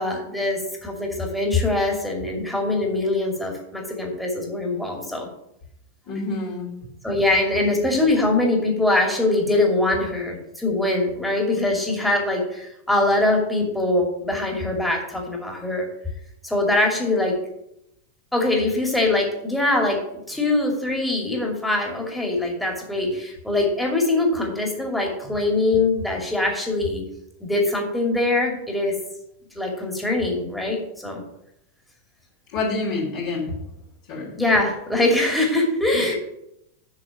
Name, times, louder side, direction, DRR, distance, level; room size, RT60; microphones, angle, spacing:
voice 1, 0.0-5.3 7.0-15.9 16.4-17.3 18.3-27.0 27.4-29.0 29.5-31.2 34.3-36.1, left 2 dB, 5° left, 0 dB, 2.6 m, -23 dB
voice 2, 6.1-6.9 32.5-33.5 34.1-34.3 35.9-36.1, left 3 dB, 45° left, -8 dB, 3.2 m, -28 dB
7.4 x 6.3 x 7.1 m, 0.82 s
figure-of-eight pair, 90°, 0 cm